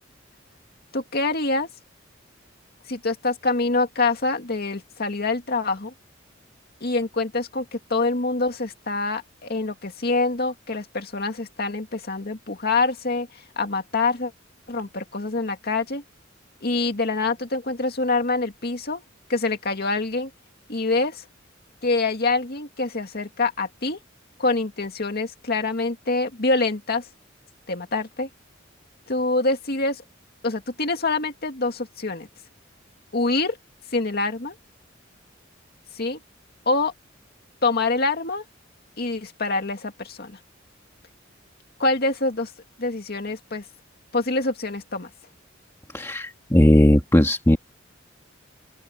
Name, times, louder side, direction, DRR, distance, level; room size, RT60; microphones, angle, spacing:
voice 1, 0.9-1.7 2.9-5.9 6.8-14.3 14.7-16.0 16.6-19.0 19.3-20.3 20.7-21.2 21.8-24.0 24.4-27.1 27.7-28.3 29.1-30.0 30.4-32.3 33.1-33.6 33.9-34.5 35.9-36.2 36.7-36.9 37.6-38.4 39.0-40.4 41.8-42.5 42.8-43.6 44.1-45.1, left 3 dB, 55° left, 2.2 m, -25 dB
voice 2, 45.9-47.6, equal, 15° left, 1.8 m, -17 dB
open air
head